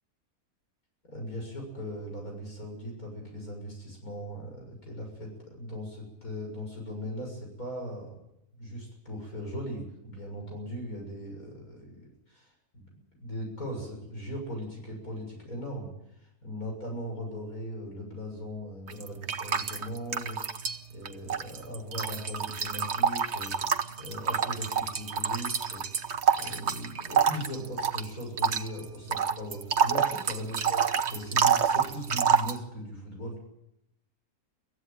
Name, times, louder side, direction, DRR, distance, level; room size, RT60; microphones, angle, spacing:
voice 1, 1.1-8.1 8.6-20.4 20.9-25.8 26.3-33.4, equal, 70° left, 1 dB, 7.4 m, -39 dB
sound 1, 18.9-20.8 21.0-32.6, right 7 dB, 50° right, 1.3 m, -28 dB
24.0 x 15.5 x 9.1 m, 0.83 s
omnidirectional pair, 1.6 m